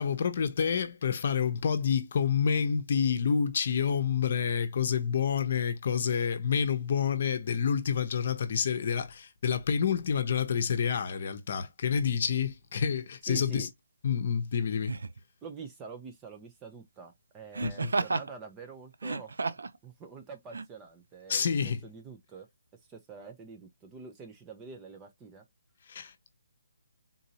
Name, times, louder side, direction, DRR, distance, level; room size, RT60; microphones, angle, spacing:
voice 1, 0.0-13.7 14.0-15.0 17.6-17.9 21.3-21.8 25.9-26.3, left 7 dB, 45° left, 0.7 m, -28 dB
voice 2, 13.3-13.7 15.4-21.5 21.8-22.5 22.9-25.4, right 5 dB, 15° right, 0.5 m, -46 dB
Laughter, 13.3-13.5 14.8-15.2 17.5-18.3 18.9-19.8 20.5-20.6, right 3 dB, 85° right, 0.4 m, -32 dB
3.8 x 2.7 x 2.8 m
hypercardioid pair, 165°, 0 cm